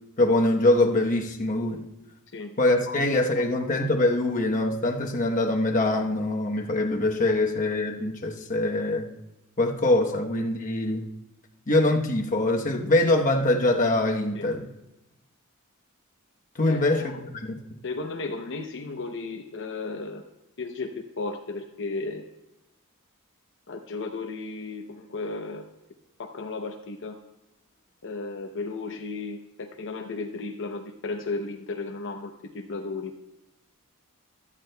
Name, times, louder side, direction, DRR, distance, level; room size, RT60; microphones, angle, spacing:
voice 1, 0.2-1.9 2.6-9.1 9.6-11.0 11.7-14.7 16.5-17.1 17.5-17.6, left 2 dB, 35° left, 1 dB, 1.0 m, -23 dB
voice 2, 16.6-17.3 17.8-20.2 20.6-22.2 23.7-25.6 26.2-27.2 28.0-33.1, left 3 dB, 60° left, 3 dB, 0.7 m, -34 dB
17.0 x 12.0 x 2.2 m, 0.97 s
head